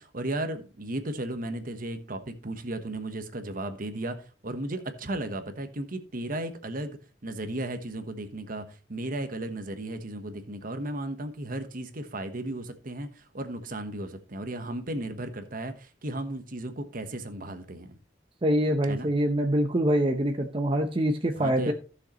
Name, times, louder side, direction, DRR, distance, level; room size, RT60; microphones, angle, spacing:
voice 1, 0.0-4.2 4.4-18.0 18.9-19.1 21.4-21.7, right 1 dB, 45° right, 8 dB, 1.1 m, -35 dB
voice 2, 18.4-21.7, right 1 dB, 30° right, 3 dB, 0.7 m, -25 dB
15.0 x 6.5 x 3.1 m, 0.36 s
head